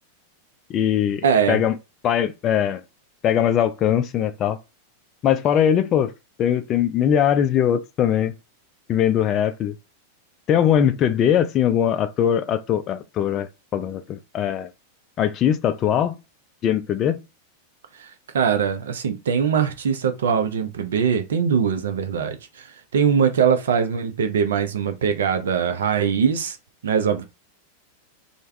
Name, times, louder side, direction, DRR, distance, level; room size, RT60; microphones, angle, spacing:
voice 1, 0.7-1.8 2.0-2.8 3.2-4.6 5.2-6.1 6.4-8.3 8.9-9.8 10.5-14.7 15.2-16.2 16.6-17.2, left 9 dB, 30° left, 0.3 m, -21 dB
voice 2, 1.2-1.6 18.0-18.1 18.3-22.7 22.9-26.6 26.8-27.2, right 7 dB, 65° right, 0.5 m, -21 dB
3.3 x 2.1 x 3.3 m
figure-of-eight pair, 90°, 0 cm